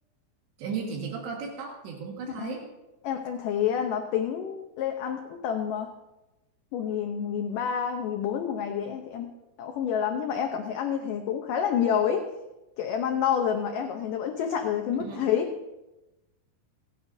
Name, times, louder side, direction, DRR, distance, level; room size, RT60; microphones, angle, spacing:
voice 1, 0.6-2.7 15.0-15.3, right 5 dB, 85° right, -1 dB, 3.8 m, -35 dB
voice 2, 3.0-5.9 6.7-12.2 12.8-15.5, left 8 dB, 80° left, 4 dB, 1.9 m, -28 dB
28.5 x 9.5 x 2.7 m, 1.0 s
omnidirectional pair, 4.8 m